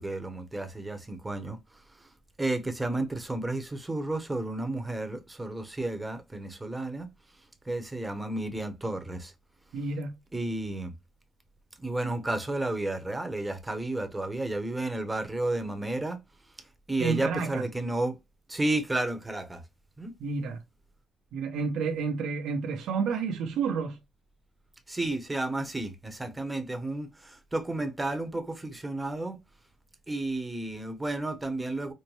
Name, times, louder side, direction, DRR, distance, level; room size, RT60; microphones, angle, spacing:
voice 1, 0.0-1.6 2.0-2.1 2.4-7.1 7.6-9.3 10.3-10.9 11.8-16.2 16.9-18.2 18.5-19.6 20.0-20.1 24.9-29.4 30.1-31.9, right 2 dB, 15° right, 1.0 m, -32 dB
voice 2, 9.7-10.1 17.0-17.6 20.2-20.6 21.3-24.0, right 5 dB, 80° right, 0.9 m, -30 dB
5.4 x 2.1 x 3.1 m
cardioid pair, 90°, 0 cm